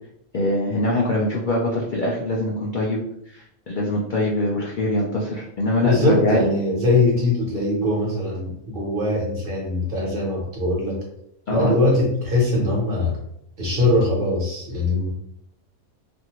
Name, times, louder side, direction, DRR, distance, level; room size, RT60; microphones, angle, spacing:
voice 1, 0.3-3.0 3.3-6.4 11.5-11.7, left 1 dB, 85° left, -3 dB, 0.4 m, -23 dB
voice 2, 5.8-11.0 11.5-13.2 13.6-15.1, left 2 dB, 45° right, -4 dB, 0.9 m, -21 dB
2.5 x 2.5 x 2.8 m, 0.77 s
omnidirectional pair, 1.5 m